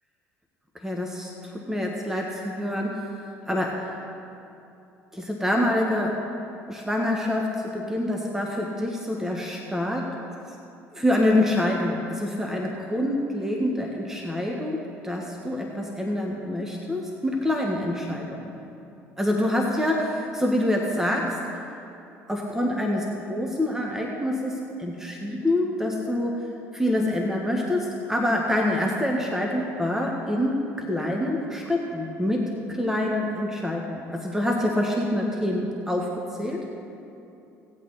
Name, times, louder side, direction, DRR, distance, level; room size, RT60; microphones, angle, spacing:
voice 1, 0.8-3.0 3.5-3.9 5.1-6.2 6.7-10.2 10.9-18.5 19.2-21.4 22.3-26.4 26.7-36.6, left 1 dB, 5° right, 0 dB, 1.6 m, -26 dB
17.5 x 8.5 x 4.2 m, 2.8 s
hypercardioid pair, 70°, 7 cm